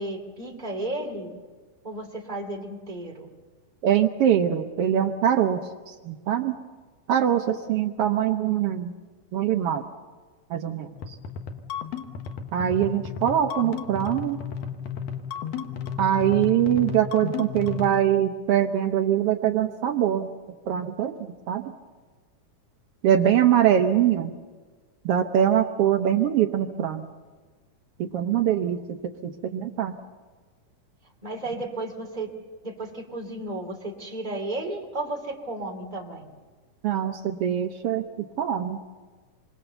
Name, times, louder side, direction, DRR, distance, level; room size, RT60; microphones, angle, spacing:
voice 1, 0.0-1.3 1.8-3.3 31.2-32.3 32.6-36.3, right 2 dB, 15° right, 0 dB, 2.6 m, -33 dB
voice 2, 3.8-6.5 7.1-8.9 9.3-9.8 10.5-11.2 12.5-14.4 16.0-20.3 20.7-21.1 21.5-21.7 23.0-24.3 25.0-27.1 28.0-29.9 36.8-38.0 38.4-38.8, right 10 dB, 85° right, 5 dB, 1.3 m, -23 dB
sound 1, 11.0-18.0, left 7 dB, 60° left, 2.1 m, -34 dB
27.5 x 22.5 x 6.9 m, 1.4 s
omnidirectional pair, 3.9 m